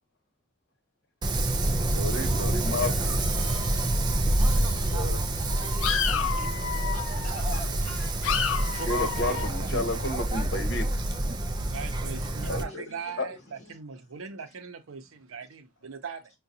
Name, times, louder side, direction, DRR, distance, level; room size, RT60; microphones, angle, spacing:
Wind, 1.2-12.6, right 1 dB, 20° right, 0.3 m, -27 dB
voice 1, 1.9-3.2 4.9-5.2 8.9-10.9 12.5-12.8 13.2-13.3, left 2 dB, 55° left, 1.0 m, -31 dB
sound 1, 2.8-4.1 4.4-4.9 5.4-7.9 8.2-9.5, left 8 dB, 80° left, 0.4 m, -32 dB
voice 2, 4.8-8.8 12.4-13.8, left 2 dB, 35° left, 1.5 m, -48 dB
voice 3, 8.7-9.5 11.5-16.3, right 5 dB, 85° right, 0.6 m, -40 dB
4.7 x 2.2 x 2.6 m
head